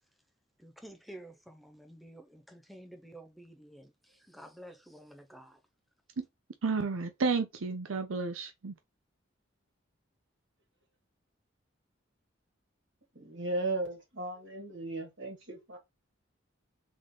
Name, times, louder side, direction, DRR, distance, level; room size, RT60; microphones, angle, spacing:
voice 1, 0.6-5.6, right 1 dB, ahead, 0.6 m, -51 dB
voice 2, 6.6-8.7, right 4 dB, 85° right, 0.6 m, -31 dB
voice 3, 13.2-15.8, right 2 dB, 60° right, 2.2 m, -36 dB
3.7 x 3.7 x 3.1 m
head